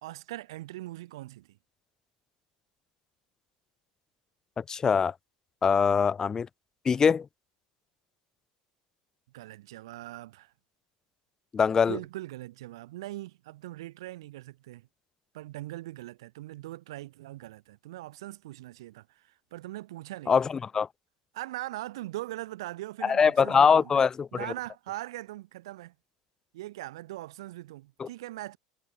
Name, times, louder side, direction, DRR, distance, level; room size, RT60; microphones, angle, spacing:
voice 1, 0.0-1.6 5.7-6.0 9.3-10.5 11.9-14.9 15.3-20.4 21.3-24.0 24.3-25.9 26.5-28.6, right 16 dB, 90° right, 1.5 m, -41 dB
voice 2, 4.6-5.1 5.6-6.5 6.9-7.3 11.5-12.0 20.3-20.9 23.0-24.3 28.0-28.1, left 6 dB, 25° left, 0.3 m, -23 dB
supercardioid pair, 105°, 3 cm